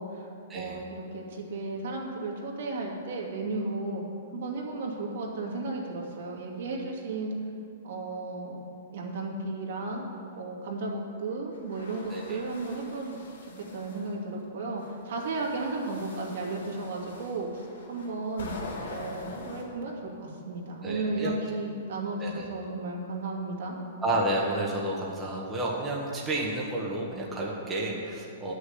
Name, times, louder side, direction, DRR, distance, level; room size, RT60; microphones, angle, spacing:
voice 1, 0.0-4.0 4.3-7.3 7.8-8.6 8.9-10.1 10.4-23.8, right 3 dB, 65° right, -2 dB, 2.5 m, -34 dB
sound 1, 11.5-14.1 14.8-19.6, left 3 dB, 85° left, 2.5 m, -44 dB
voice 2, 20.8-21.4 22.2-22.5 24.0-28.5, right 1 dB, 10° right, -4 dB, 1.4 m, -31 dB
10.5 x 6.7 x 7.9 m, 2.4 s
hypercardioid pair, 160°, 0 cm